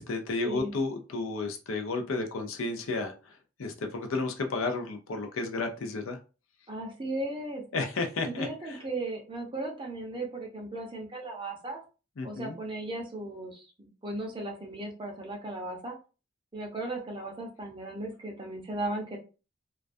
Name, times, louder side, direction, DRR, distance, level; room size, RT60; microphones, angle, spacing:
voice 1, 0.0-6.2 7.7-8.8 12.2-12.6, left 3 dB, 75° left, 5 dB, 0.5 m, -32 dB
voice 2, 6.7-7.6 8.2-11.8 12.2-16.0 16.5-19.2, right 2 dB, 25° right, 1 dB, 0.6 m, -36 dB
2.2 x 2.2 x 2.5 m, 0.33 s
head